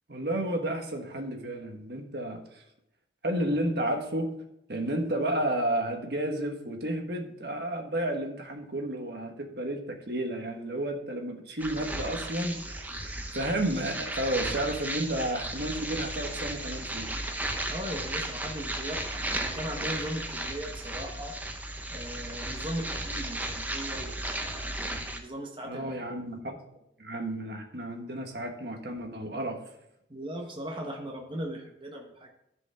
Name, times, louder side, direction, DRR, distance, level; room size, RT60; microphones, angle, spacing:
voice 1, 0.1-2.6 3.2-4.3 4.7-9.8 10.1-17.1 25.6-26.6 27.0-29.6, right 1 dB, 60° right, 3 dB, 1.4 m, -32 dB
sound 1, 11.6-25.2, right 1 dB, 10° right, 0.7 m, -35 dB
voice 2, 17.7-21.3 21.9-25.9 30.1-32.3, equal, 30° right, 1 dB, 1.1 m, -38 dB
13.5 x 5.2 x 3.6 m, 0.79 s
head